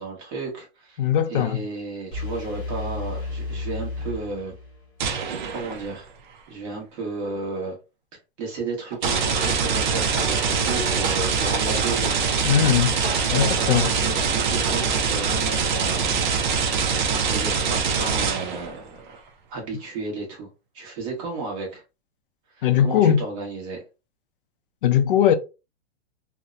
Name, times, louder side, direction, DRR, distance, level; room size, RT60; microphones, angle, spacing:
voice 1, 0.0-1.0 1.3-4.5 5.5-6.1 6.5-7.8 8.4-12.9 13.3-16.6 17.1-19.2 19.5-20.5 20.7-21.8 22.6-23.8, right 3 dB, 30° right, 1.0 m, -33 dB
voice 2, 1.0-1.6 12.4-12.9 13.3-13.9 22.6-23.2 24.8-25.3, left 9 dB, 55° left, 0.4 m, -19 dB
sound 1, 2.1-5.0, left 3 dB, 15° left, 0.7 m, -32 dB
sound 2, 5.0-6.0 9.0-18.8, right 5 dB, 45° right, 0.5 m, -24 dB
sound 3, 8.9-15.0, right 3 dB, 65° right, 0.8 m, -33 dB
2.7 x 2.1 x 2.3 m
supercardioid pair, 175°, 32 cm